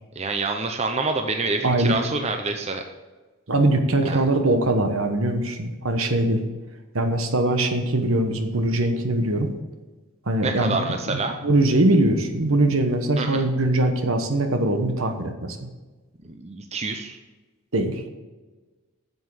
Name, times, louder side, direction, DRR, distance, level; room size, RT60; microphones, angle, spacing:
voice 1, 0.2-2.8 4.0-4.2 10.4-11.3 13.2-13.4 16.2-17.2, right 3 dB, 30° right, 5 dB, 0.6 m, -27 dB
voice 2, 1.6-2.0 3.5-6.4 6.9-9.5 10.3-15.7 17.7-18.1, right 1 dB, 70° right, 6 dB, 1.2 m, -22 dB
8.0 x 7.5 x 6.3 m, 1.2 s
head